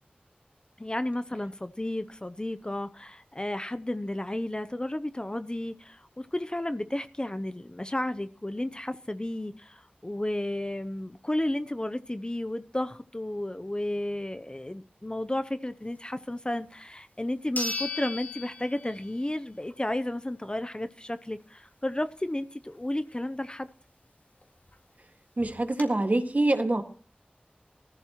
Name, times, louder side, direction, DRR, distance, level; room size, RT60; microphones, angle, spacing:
voice 1, 0.8-23.7, left 1 dB, 25° left, 11 dB, 0.7 m, -33 dB
sound 1, 16.7-16.8 17.6-19.3 19.7-19.8 24.4-24.5 24.7-24.8 25.4-25.8, left 3 dB, 60° left, 3.5 m, -36 dB
voice 2, 25.4-26.8, right 2 dB, 55° right, 6 dB, 1.9 m, -25 dB
20.0 x 14.0 x 3.0 m, 0.41 s
wide cardioid pair, 45°, 3 cm